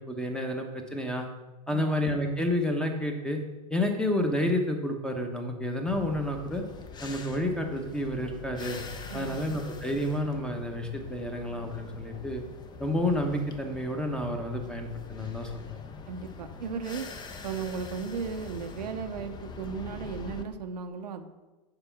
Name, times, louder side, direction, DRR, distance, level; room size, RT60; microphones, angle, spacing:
voice 1, 0.1-0.7 0.9-1.3 1.7-3.4 3.7-6.6 7.0-8.8 9.1-12.4 12.8-15.8, left 1 dB, 5° left, 3 dB, 1.0 m, -30 dB
sound 1, 5.9-20.4, left 4 dB, 20° left, 0.7 m, -44 dB
voice 2, 9.1-9.6 16.1-17.1 17.4-21.3, right 5 dB, 85° right, 7 dB, 0.8 m, -36 dB
6.8 x 4.5 x 5.8 m, 1.1 s
hypercardioid pair, 110°, 20 cm